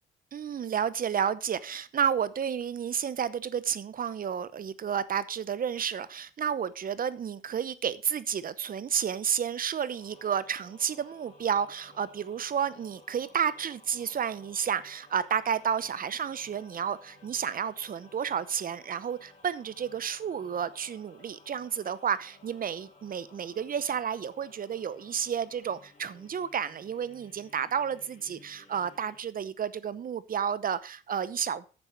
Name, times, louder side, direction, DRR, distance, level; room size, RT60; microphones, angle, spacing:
voice 1, 0.3-31.7, right 8 dB, 45° right, 17 dB, 0.8 m, -31 dB
sound 1, 9.9-29.2, left 3 dB, 40° left, 3.7 m, -57 dB
9.8 x 7.2 x 5.1 m, 0.35 s
cardioid pair, 90°, 20 cm